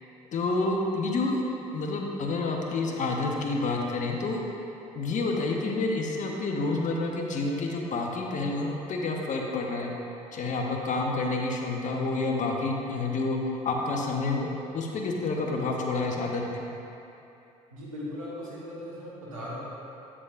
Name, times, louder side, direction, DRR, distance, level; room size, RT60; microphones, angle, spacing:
voice 1, 0.3-1.4 1.7-4.4 4.9-9.9 10.3-13.4 13.6-14.5 14.7-16.6, left 3 dB, 45° left, 0 dB, 1.0 m, -29 dB
voice 2, 17.7-19.6, left 1 dB, 90° right, -7 dB, 1.4 m, -38 dB
8.2 x 7.3 x 2.5 m, 2.9 s
hypercardioid pair, 55°, 17 cm